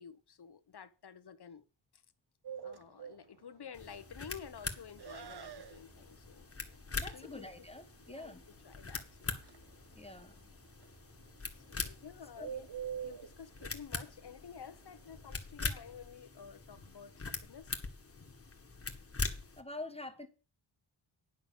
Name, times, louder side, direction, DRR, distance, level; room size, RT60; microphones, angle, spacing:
voice 1, 0.0-1.6 2.6-6.5 7.1-7.5 8.0-8.4 8.6-9.4 11.5-12.7 12.9-17.8, left 7 dB, 55° left, 1.0 m, -51 dB
Bird, 2.4-15.4, right 8 dB, 55° right, 0.8 m, -48 dB
sound 1, 3.7-19.6, left 4 dB, 30° left, 1.5 m, -43 dB
voice 2, 7.0-8.4 9.9-10.3 12.4-12.5 19.6-20.3, left 2 dB, 10° left, 1.1 m, -46 dB
10.5 x 5.9 x 7.1 m
wide cardioid pair, 135°, 48 cm